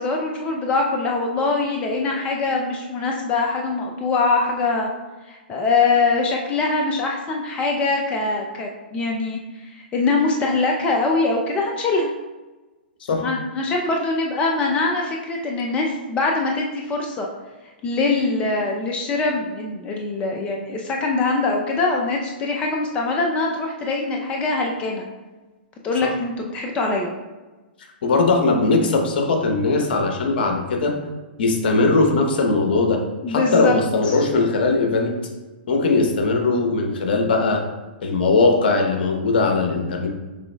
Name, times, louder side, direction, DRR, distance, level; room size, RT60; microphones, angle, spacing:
voice 1, 0.0-4.9 5.3-9.4 9.7-12.1 13.2-17.3 17.8-25.0 25.8-27.1 33.2-33.8 34.0-34.2, left 3 dB, 20° left, 0 dB, 0.5 m, -23 dB
voice 2, 28.0-30.9 31.4-33.0 33.3-35.1 35.7-37.6 38.0-40.1, left 3 dB, 65° left, 3 dB, 0.9 m, -19 dB
6.6 x 3.3 x 2.2 m, 1.2 s
hypercardioid pair, 120°, 6 cm